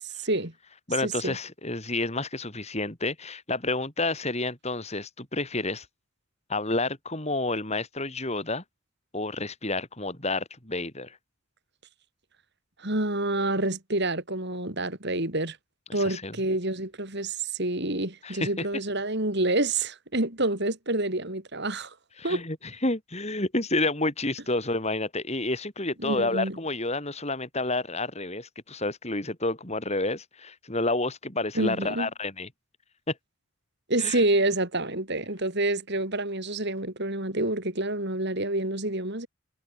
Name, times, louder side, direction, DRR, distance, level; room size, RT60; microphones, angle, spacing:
voice 1, 0.2-0.5 1.0-1.4 12.8-15.6 15.9-21.9 22.2-22.4 26.0-26.6 31.5-32.1 33.9-39.3, right 2 dB, 50° right, 4.3 m, -28 dB
voice 2, 0.9-5.9 6.5-8.6 9.1-11.2 15.9-16.3 18.2-18.7 22.2-22.6 22.8-32.5 33.1-33.2 34.0-34.2, left 2 dB, 30° left, 4.4 m, -29 dB
head